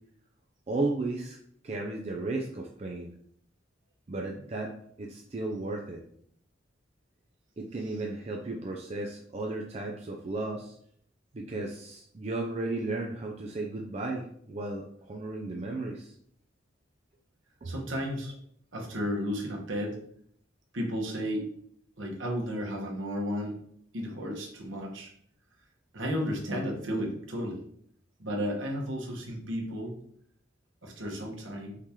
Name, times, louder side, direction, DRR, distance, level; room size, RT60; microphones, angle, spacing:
voice 1, 0.7-1.4 1.6-3.1 4.1-4.7 5.0-6.0 7.6-10.8 11.3-16.2 17.6-17.7, right 2 dB, 35° right, 0 dB, 0.4 m, -34 dB
voice 2, 17.6-18.4 18.7-20.0 20.7-21.5 22.0-23.6 23.9-25.1 25.9-27.6 28.2-30.0 30.8-31.8, equal, 80° right, 0 dB, 1.2 m, -33 dB
4.8 x 2.9 x 3.6 m, 0.65 s
head